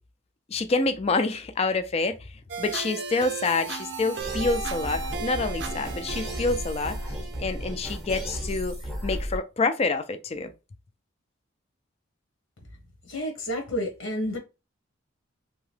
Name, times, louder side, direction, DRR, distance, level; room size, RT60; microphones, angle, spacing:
voice 1, 0.5-7.0 7.4-8.8 9.0-10.5, left 3 dB, 30° left, 0.3 m, -27 dB
sound 1, 2.5-8.5, right 5 dB, 60° right, 0.5 m, -36 dB
sound 2, 4.2-9.4, equal, 5° right, 0.7 m, -34 dB
voice 2, 13.1-14.4, equal, 80° left, 1.0 m, -30 dB
2.8 x 2.2 x 3.2 m
head